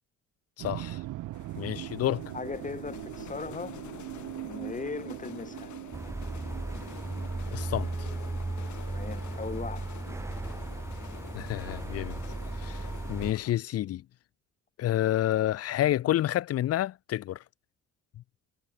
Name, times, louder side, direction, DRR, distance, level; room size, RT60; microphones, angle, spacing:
voice 1, 0.6-1.0 1.6-2.3 7.5-8.1 11.3-12.2 12.6-14.0 14.8-17.4, left 13 dB, 55° left, 0.5 m, -29 dB
sound 1, 0.6-9.5, right 16 dB, 90° right, 2.1 m, -42 dB
sound 2, 1.3-13.5, left 12 dB, 70° left, 2.9 m, -48 dB
voice 2, 2.3-3.8 4.4-5.7 8.9-9.9, left 4 dB, 25° left, 1.4 m, -38 dB
sound 3, 5.9-13.3, right 2 dB, 10° right, 0.5 m, -36 dB
cardioid pair, 90°, 30 cm